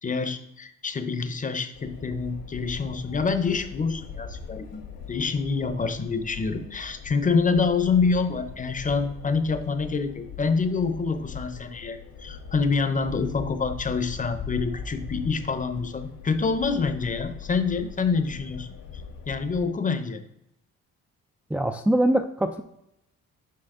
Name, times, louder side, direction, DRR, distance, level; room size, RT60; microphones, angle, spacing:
voice 1, 0.0-4.8 5.1-18.7 19.3-20.2, left 4 dB, 25° left, 10 dB, 0.7 m, -26 dB
sound 1, 1.7-19.6, left 6 dB, 85° left, 1.7 m, -41 dB
voice 2, 21.5-22.6, right 1 dB, 5° right, 5 dB, 0.3 m, -23 dB
7.7 x 4.2 x 3.6 m, 0.85 s
cardioid pair, 90°, 30 cm